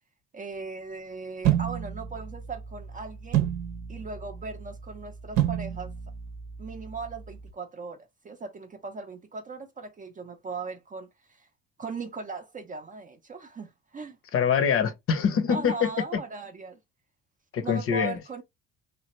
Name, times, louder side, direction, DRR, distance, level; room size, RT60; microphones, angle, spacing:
voice 1, 0.3-3.5 3.9-5.9 6.6-11.5 11.8-14.2 15.5-16.8 17.6-18.4, right 4 dB, 25° right, 0.5 m, -38 dB
sound 1, 1.4-7.5, right 11 dB, 70° right, 0.7 m, -31 dB
voice 2, 14.3-15.9 17.5-18.2, left 7 dB, 50° left, 0.7 m, -24 dB
3.3 x 2.4 x 2.9 m
cardioid pair, 105°, 30 cm